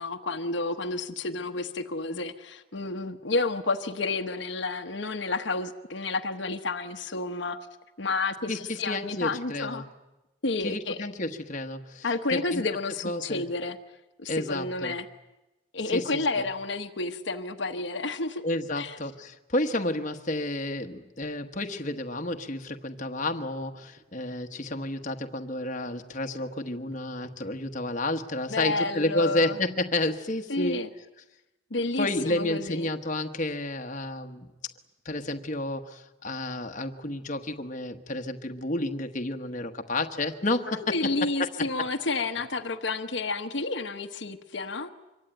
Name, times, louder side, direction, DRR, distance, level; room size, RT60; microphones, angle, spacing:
voice 1, 0.0-7.6 8.0-9.8 10.4-11.0 12.0-13.8 14.2-15.1 15.7-18.4 18.8-18.9 28.5-29.5 30.5-30.9 31.7-32.9 40.7-44.9, left 3 dB, 65° left, 6 dB, 1.2 m, -30 dB
voice 2, 8.5-9.9 10.6-12.6 13.0-13.4 14.3-15.0 15.9-16.4 18.4-30.8 32.0-34.5 35.0-41.1 41.4-41.7, left 2 dB, 40° left, 5 dB, 1.2 m, -31 dB
sound 1, 23.3-23.7 24.0-24.4 24.7-27.4, right 1 dB, 60° right, 6.2 m, -58 dB
25.5 x 23.5 x 9.1 m, 1.0 s
head